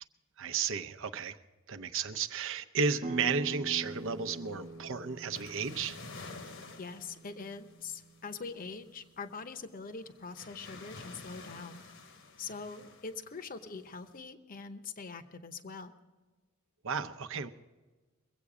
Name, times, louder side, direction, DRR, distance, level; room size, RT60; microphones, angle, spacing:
voice 1, 0.4-1.4 1.7-6.0 16.8-17.5, right 5 dB, 65° right, 8 dB, 0.7 m, -33 dB
sound 1, 3.0-8.6, right 2 dB, 30° right, 0.7 m, -44 dB
sound 2, 3.8-14.2, left 3 dB, 65° left, 1.1 m, -51 dB
voice 2, 6.8-11.9 12.4-15.9, left 4 dB, 40° left, 9 dB, 0.8 m, -43 dB
23.0 x 8.4 x 5.0 m, 1.3 s
head